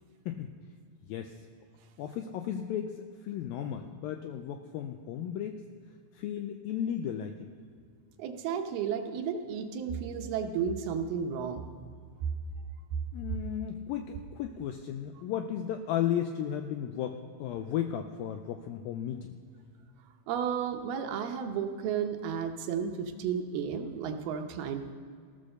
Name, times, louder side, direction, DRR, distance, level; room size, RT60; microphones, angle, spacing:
voice 1, 2.0-3.0 3.2-5.6 6.2-7.5 13.1-19.3, left 9 dB, 85° left, 6 dB, 2.0 m, -34 dB
voice 2, 8.2-11.7 20.3-24.9, right 7 dB, 75° right, 5 dB, 2.6 m, -33 dB
15.5 x 12.0 x 6.6 m, 2.1 s
omnidirectional pair, 4.8 m